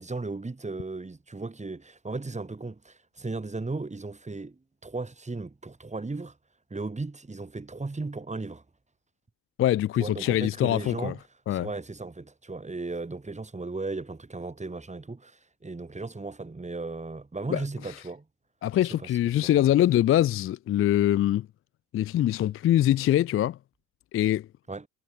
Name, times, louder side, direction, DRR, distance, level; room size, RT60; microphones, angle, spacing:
voice 1, 0.0-6.4 6.7-8.6 10.0-11.2 11.5-18.2 18.8-19.1 19.4-19.7 24.7-24.9, right 3 dB, 15° right, 3.4 m, -36 dB
voice 2, 9.6-11.1 11.5-11.7 17.5-17.6 18.6-21.5 21.9-23.6 24.1-24.5, left 12 dB, 35° left, 0.4 m, -23 dB
hypercardioid pair, 65°, 41 cm